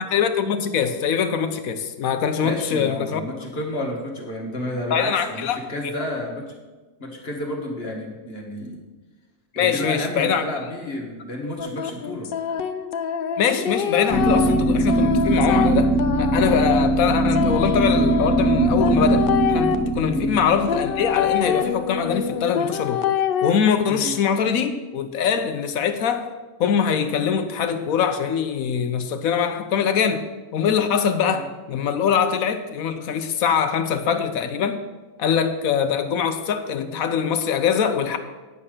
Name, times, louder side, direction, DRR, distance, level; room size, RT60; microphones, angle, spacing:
voice 1, 0.0-3.2 4.9-5.6 9.5-10.4 13.4-15.9 16.2-23.0 23.4-26.3 26.6-30.3 30.5-34.8 35.2-38.2, left 7 dB, 70° left, 9 dB, 1.1 m, -23 dB
voice 2, 2.4-6.5 7.0-8.8 9.5-12.3 20.1-20.4 23.9-24.1 31.3-31.4, left 1 dB, 40° left, 0 dB, 1.8 m, -31 dB
sound 1, 11.6-19.7 20.7-23.5, left 8 dB, 85° left, 0.5 m, -26 dB
sound 2, 14.1-22.0, right 2 dB, 15° right, 1.0 m, -21 dB
9.7 x 5.7 x 6.5 m, 1.3 s
omnidirectional pair, 1.6 m